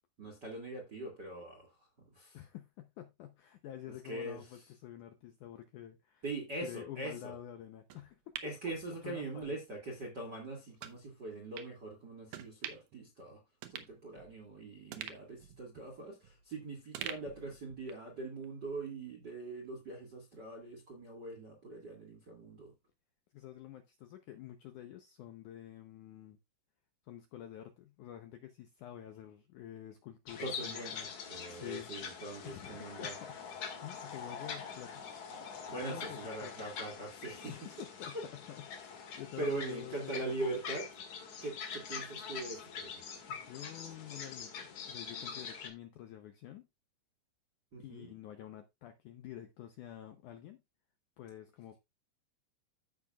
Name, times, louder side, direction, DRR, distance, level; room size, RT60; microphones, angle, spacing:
voice 1, 0.2-2.4 4.0-4.6 6.2-7.3 8.4-13.4 13.7-22.7 30.4-33.1 35.7-37.5 39.4-40.9 41.4-43.0 47.7-48.1, right 2 dB, 40° right, 1.7 m, -42 dB
voice 2, 2.3-6.2 6.6-8.4 8.9-9.6 23.3-26.4 27.1-31.1 31.5-31.9 32.4-35.0 35.7-36.5 37.5-37.7 38.0-40.5 43.3-46.7 47.8-50.6 51.2-51.8, left 12 dB, 80° left, 1.8 m, -48 dB
sound 1, 7.9-9.5 9.9-10.0 10.8-11.0 11.6-11.7 12.3-13.0 13.3-13.4 13.6-14.5 14.9-16.5 16.9-18.1 18.4-18.5, right 10 dB, 70° right, 2.0 m, -46 dB
sound 2, 30.3-45.7, left 6 dB, 55° left, 2.9 m, -44 dB
15.0 x 5.9 x 2.4 m
omnidirectional pair, 4.5 m